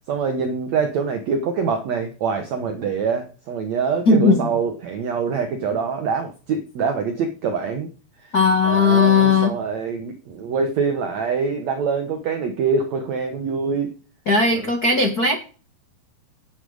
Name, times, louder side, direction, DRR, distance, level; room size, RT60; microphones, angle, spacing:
voice 1, 0.1-7.9 8.2-8.3 8.6-14.0 14.5-14.6, right 5 dB, 80° right, 7 dB, 1.6 m, -24 dB
voice 2, 4.1-4.5 8.3-9.5 14.3-15.4, left 4 dB, 85° left, 4 dB, 0.8 m, -17 dB
10.0 x 9.0 x 4.9 m, 0.37 s
omnidirectional pair, 4.7 m